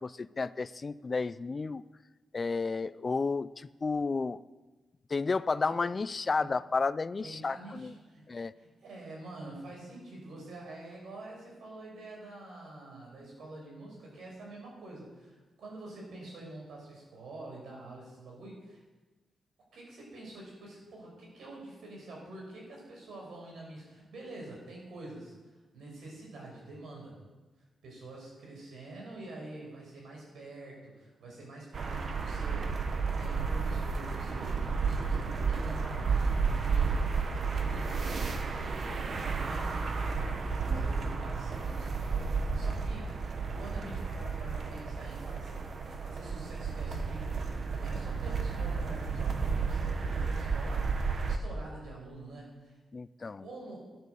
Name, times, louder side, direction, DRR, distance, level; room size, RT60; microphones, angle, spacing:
voice 1, 0.0-1.8 2.3-4.4 5.1-7.9 8.3-8.5 40.7-40.8 52.9-53.5, left 4 dB, 35° left, 17 dB, 0.4 m, -32 dB
voice 2, 7.2-8.2 8.5-18.8 19.7-25.3 25.7-27.2 27.8-32.8 33.2-40.1 40.6-45.6 45.9-50.9 51.2-52.7 53.4-54.0, right 2 dB, 80° right, -2 dB, 5.7 m, -47 dB
sound 1, 31.7-51.4, right 5 dB, 50° right, 1.2 m, -32 dB
12.5 x 10.5 x 6.8 m, 1.2 s
cardioid pair, 110°, 0 cm